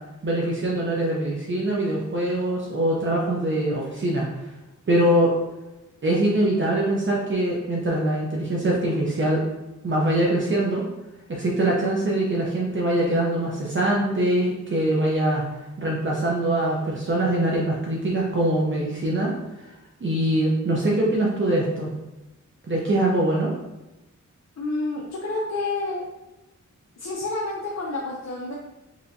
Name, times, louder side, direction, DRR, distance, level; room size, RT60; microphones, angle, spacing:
voice 1, 0.2-4.3 4.9-5.3 6.0-9.4 9.8-10.8 11.3-15.4 15.8-19.3 19.6-19.7 20.0-21.9 22.7-23.5, right 1 dB, 40° right, -4 dB, 0.7 m, -23 dB
voice 2, 24.6-26.0 27.0-28.5, left 2 dB, 60° left, -3 dB, 0.6 m, -29 dB
5.6 x 2.8 x 2.7 m, 0.98 s
wide cardioid pair, 140°, 30 cm